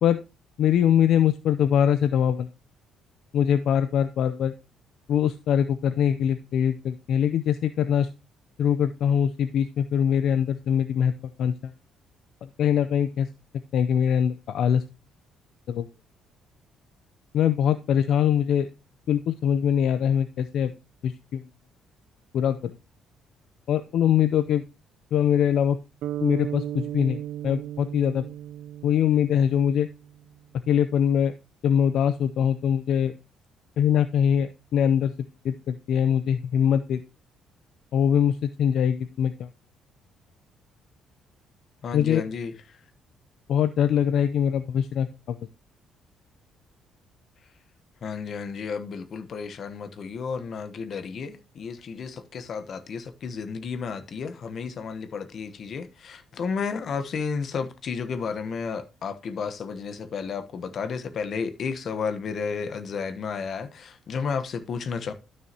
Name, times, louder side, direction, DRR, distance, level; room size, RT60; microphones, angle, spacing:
voice 1, 0.6-2.5 3.3-4.5 5.1-8.1 8.6-11.1 11.4-11.7 12.6-13.3 13.7-14.8 15.7-15.9 17.3-18.7 19.1-20.7 21.0-21.4 22.3-22.7 23.7-24.6 25.1-25.8 26.2-28.3 28.8-29.9 30.7-31.3 31.6-33.1 33.8-35.1 35.4-37.0 37.9-39.5 41.9-42.2 43.5-45.4, left 9 dB, 65° left, 0.5 m, -23 dB
sound 1, 26.0-30.3, right 12 dB, 75° right, 0.5 m, -35 dB
voice 2, 41.8-42.5 48.0-65.1, left 5 dB, 50° left, 1.1 m, -32 dB
12.0 x 6.4 x 2.9 m
cardioid pair, 125°, 0 cm